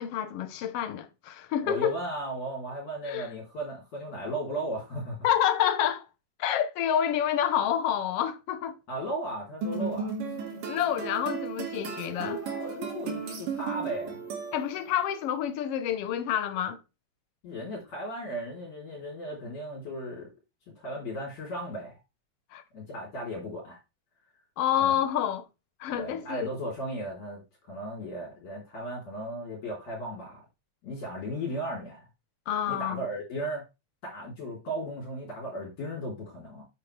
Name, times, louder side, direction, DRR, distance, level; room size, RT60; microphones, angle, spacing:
voice 1, 0.0-2.0 3.0-3.3 5.2-6.1 6.4-8.8 10.7-12.4 14.5-16.8 22.5-22.6 24.6-25.5 25.8-26.5 32.5-33.0, left 10 dB, 75° left, 1.4 m, -28 dB
voice 2, 1.6-5.2 8.9-10.4 12.1-14.2 17.4-20.3 20.8-22.0 22.7-23.8 24.8-25.0 25.9-27.4 27.7-30.4 30.8-32.0 32.7-33.6 34.0-36.6, right 1 dB, 55° left, 4.5 m, -36 dB
sound 1, 9.6-15.0, right 5 dB, 75° right, 3.6 m, -35 dB
8.8 x 7.4 x 3.2 m
omnidirectional pair, 3.8 m